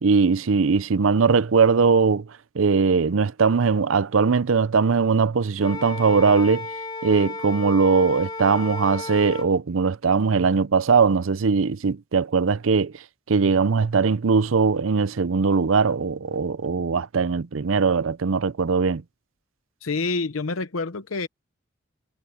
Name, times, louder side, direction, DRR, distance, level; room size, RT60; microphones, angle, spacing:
voice 1, 0.0-2.3 2.5-6.7 7.0-12.9 13.3-19.0, right 5 dB, 80° right, 0.6 m, -20 dB
Wind instrument woodwind instrument, 5.6-9.5, left 3 dB, 25° left, 2.6 m, -34 dB
voice 2, 19.8-21.3, left 3 dB, 90° left, 0.8 m, -27 dB
head